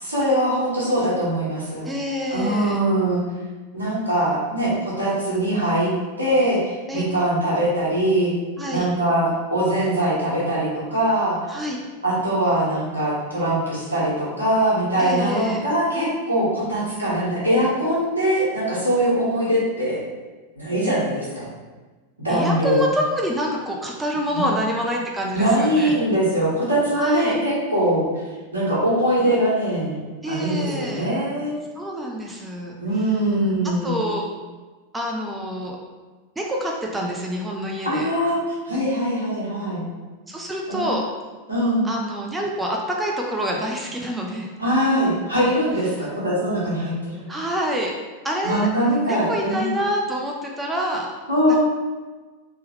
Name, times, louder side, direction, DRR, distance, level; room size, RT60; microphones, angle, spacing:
voice 1, 0.0-1.9 2.3-3.2 3.7-5.9 6.2-8.3 8.7-11.4 12.0-20.0 20.5-21.5 22.2-22.9 24.3-24.4 25.3-28.3 28.5-30.0 30.3-31.6 32.8-34.0 37.8-39.8 40.7-40.9 41.5-41.9 44.6-47.3 48.4-49.8 51.3-51.6, right 1 dB, 80° right, -8 dB, 1.4 m, -22 dB
voice 2, 1.8-2.8 6.9-7.0 8.6-8.9 11.5-11.8 15.0-15.7 22.3-25.9 27.0-27.4 30.2-31.1 31.8-32.8 33.8-34.2 34.9-35.8 36.4-38.1 40.3-41.1 41.8-44.5 45.9-46.0 47.3-47.9 48.2-48.7 49.0-51.1, equal, 10° right, -1 dB, 0.5 m, -27 dB
3.5 x 3.0 x 3.2 m, 1.3 s
figure-of-eight pair, 90°, 0 cm